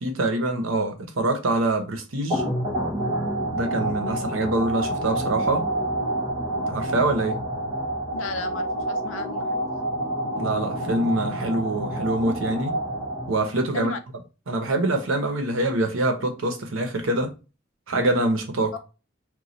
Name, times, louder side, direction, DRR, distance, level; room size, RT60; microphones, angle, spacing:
voice 1, 0.0-2.4 3.5-5.7 6.7-7.4 10.4-12.7 13.3-13.9 14.5-17.3 17.9-18.8, right 2 dB, 80° right, 0.8 m, -25 dB
sound 1, 2.3-13.7, right 1 dB, 25° right, 0.8 m, -28 dB
voice 2, 8.1-9.6 13.7-14.0 18.7-18.8, left 4 dB, 75° left, 0.6 m, -34 dB
3.0 x 2.2 x 3.9 m
head